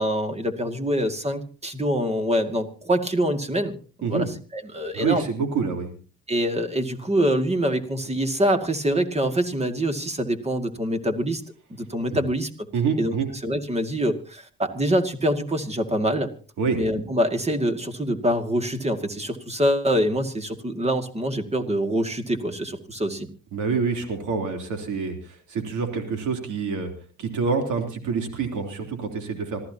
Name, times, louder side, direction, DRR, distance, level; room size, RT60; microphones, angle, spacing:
voice 1, 0.0-4.3 4.5-5.2 6.3-11.4 11.8-12.5 13.0-13.1 13.4-16.3 16.7-23.3, equal, 20° right, 7 dB, 2.2 m, -25 dB
voice 2, 4.9-5.9 12.1-12.2 12.7-13.3 16.6-16.8 23.5-26.9 27.2-29.6, right 5 dB, 80° right, 5 dB, 3.4 m, -26 dB
26.5 x 14.5 x 2.9 m, 0.38 s
cardioid pair, 90°, 30 cm